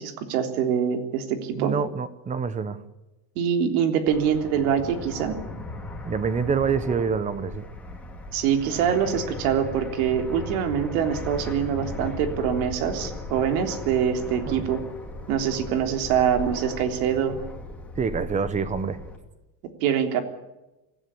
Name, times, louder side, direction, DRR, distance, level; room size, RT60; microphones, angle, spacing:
voice 1, 0.0-1.7 3.4-5.4 8.3-14.8 15.3-17.4 19.8-20.2, right 8 dB, 80° right, 6 dB, 3.6 m, -24 dB
voice 2, 1.5-2.8 6.0-7.6 14.5-14.6 18.0-19.0, right 6 dB, 15° right, 14 dB, 1.0 m, -26 dB
Fixed-wing aircraft airplane, 4.1-19.2, left 2 dB, 5° left, 2.8 m, -37 dB
25.0 x 16.5 x 8.5 m, 1.0 s
cardioid pair, 165°, 44 cm